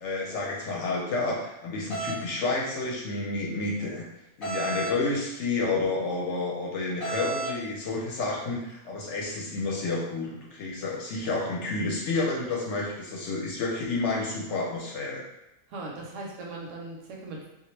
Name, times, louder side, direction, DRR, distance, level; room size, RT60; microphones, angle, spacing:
voice 1, 0.0-4.0 4.4-15.2, left 3 dB, 65° left, -2 dB, 0.8 m, -30 dB
sound 1, 1.9-2.2 4.4-5.0 7.0-7.6, right 2 dB, 25° left, 1.0 m, -31 dB
voice 2, 15.7-17.5, right 2 dB, 70° right, -1 dB, 0.9 m, -39 dB
2.3 x 2.0 x 3.1 m, 0.91 s
omnidirectional pair, 1.4 m